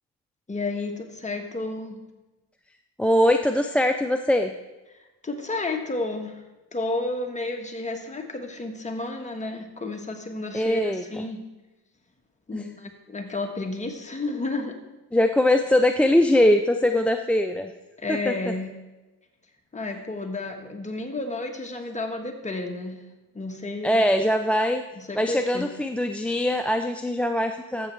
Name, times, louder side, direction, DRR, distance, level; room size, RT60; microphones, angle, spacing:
voice 1, 0.5-2.0 4.9-6.4 6.7-11.4 12.5-14.7 18.0-18.7 19.7-23.0 23.3-24.1 25.0-25.7, left 2 dB, 20° left, 3 dB, 1.4 m, -31 dB
voice 2, 3.0-4.5 10.5-11.0 12.5-12.6 15.1-17.7 18.1-18.5 23.8-24.8 25.1-27.9, left 1 dB, 5° left, 6 dB, 0.4 m, -22 dB
13.5 x 7.3 x 3.3 m, 1.1 s
cardioid pair, 90°, 36 cm